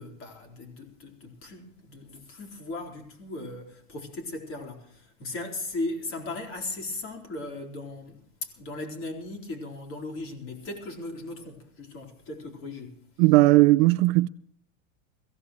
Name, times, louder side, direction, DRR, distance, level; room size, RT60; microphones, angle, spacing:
voice 1, 0.0-13.0, left 2 dB, 30° left, 4.2 m, -37 dB
voice 2, 13.2-14.3, right 19 dB, 50° right, 0.6 m, -18 dB
22.5 x 16.0 x 3.2 m
supercardioid pair, 145°, 39 cm